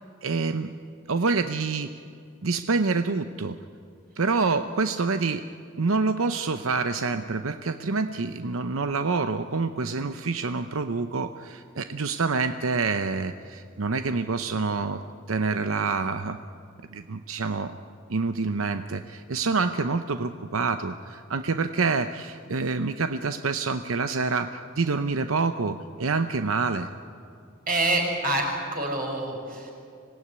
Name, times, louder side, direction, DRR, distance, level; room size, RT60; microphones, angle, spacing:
voice 1, 0.2-0.7 1.1-1.9 2.4-3.6 4.2-5.5 5.8-15.0 15.3-16.4 16.9-17.8 18.1-26.9, right 4 dB, 85° right, 9 dB, 0.8 m, -27 dB
voice 2, 4.1-4.5 27.7-28.5 28.7-29.7, right 2 dB, 45° right, 1 dB, 5.7 m, -27 dB
25.5 x 18.0 x 9.7 m, 2.5 s
head